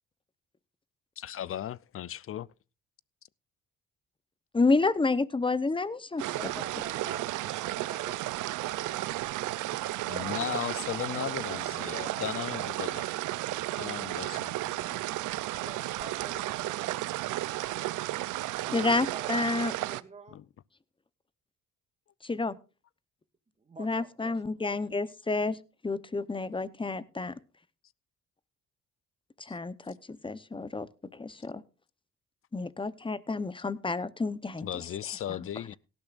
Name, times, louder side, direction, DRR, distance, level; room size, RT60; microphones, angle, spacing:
voice 1, 1.2-2.5 10.1-13.1 13.8-15.0 20.3-20.4 34.6-35.8, left 11 dB, 45° left, 0.5 m, -36 dB
voice 2, 4.5-6.5 18.7-19.7 22.2-22.6 23.8-25.6 25.8-27.3 29.4-31.6 32.5-34.7 35.3-35.4, left 3 dB, 15° left, 0.8 m, -30 dB
voice 3, 6.2-9.3 10.0-10.7 11.7-12.4 15.6-18.0 18.6-20.4 23.6-24.4, right 3 dB, 20° right, 1.8 m, -47 dB
sound 1, 6.2-20.0, right 17 dB, 85° right, 0.6 m, -33 dB
18.0 x 12.5 x 2.5 m
cardioid pair, 90°, 30 cm